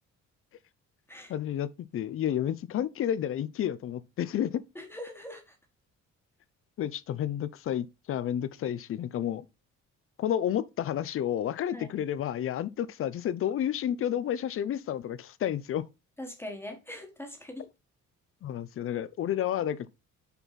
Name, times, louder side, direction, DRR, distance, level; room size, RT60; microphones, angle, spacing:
voice 1, 1.3-4.6 6.8-9.4 10.2-15.9 18.4-19.9, left 10 dB, 45° left, 0.6 m, -31 dB
voice 2, 4.7-5.6 11.7-11.9 16.2-17.7, left 1 dB, 10° left, 1.4 m, -42 dB
5.9 x 5.5 x 4.1 m
cardioid pair, 170°, 30 cm